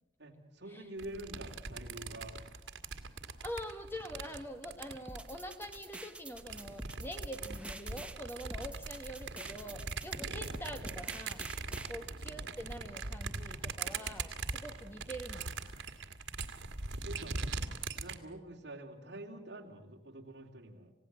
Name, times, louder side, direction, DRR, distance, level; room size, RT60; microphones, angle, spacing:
voice 1, 0.2-2.4 10.3-10.6 17.0-17.3 17.9-20.9, right 1 dB, 65° right, 2 dB, 3.1 m, -47 dB
sound 1, 1.0-5.8 6.3-18.2, right 4 dB, 90° right, 1.9 m, -41 dB
voice 2, 3.4-15.5, equal, 10° left, 6 dB, 1.4 m, -45 dB
sound 2, 5.1-11.9, right 2 dB, 5° right, 0.9 m, -47 dB
28.5 x 17.0 x 7.6 m, 0.99 s
head